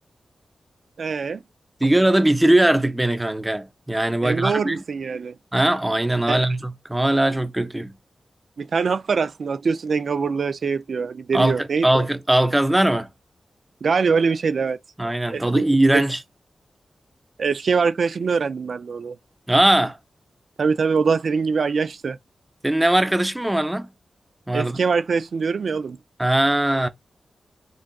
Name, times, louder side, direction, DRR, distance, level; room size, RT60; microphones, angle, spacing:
voice 1, 1.0-1.4 4.2-5.3 6.3-6.4 8.6-12.1 13.8-14.8 15.3-16.0 17.4-19.1 20.6-22.2 24.5-26.0, right 5 dB, 70° right, 0.3 m, -23 dB
voice 2, 1.8-4.8 5.5-7.9 11.3-13.1 15.0-16.2 19.5-20.0 22.6-23.9 24.5-24.8 26.2-26.9, right 1 dB, 10° right, 0.5 m, -20 dB
3.8 x 3.5 x 2.3 m
wide cardioid pair, 90°, 0 cm